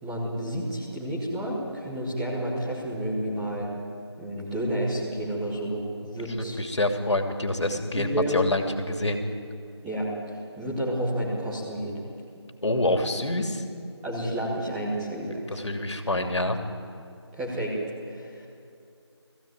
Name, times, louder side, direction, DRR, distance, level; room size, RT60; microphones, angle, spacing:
voice 1, 0.0-3.7 4.2-6.6 7.9-8.4 9.8-12.0 14.0-15.6 17.3-17.8 18.0-18.4, right 1 dB, 5° right, -7 dB, 1.0 m, -30 dB
voice 2, 6.6-9.3 12.6-13.6 15.5-16.6, left 1 dB, 75° left, 6 dB, 2.7 m, -26 dB
19.5 x 15.5 x 9.2 m, 2.6 s
figure-of-eight pair, 175°, 15 cm